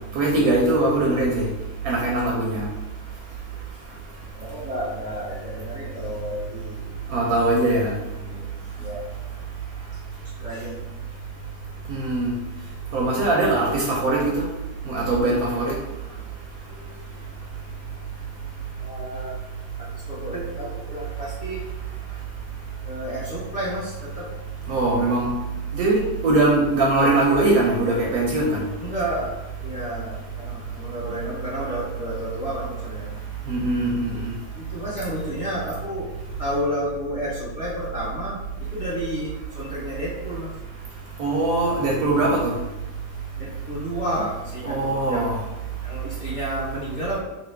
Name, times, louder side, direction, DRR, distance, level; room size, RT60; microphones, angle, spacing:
voice 1, 0.2-1.5 1.9-2.6 7.1-7.9 11.9-12.3 12.9-14.4 14.9-15.7 24.7-25.3 25.8-28.6 33.5-34.1 41.2-42.5 44.6-45.4, right 2 dB, 70° right, -2 dB, 0.9 m, -21 dB
voice 2, 4.3-6.9 7.6-8.5 8.8-9.0 10.4-10.8 11.9-12.0 16.7-17.0 18.8-19.4 19.8-21.7 22.8-24.4 28.8-33.1 34.5-36.1 36.4-40.5 43.4-45.3 45.8-47.2, equal, 35° left, -9 dB, 0.8 m, -31 dB
3.0 x 2.6 x 3.3 m, 1.0 s
omnidirectional pair, 1.8 m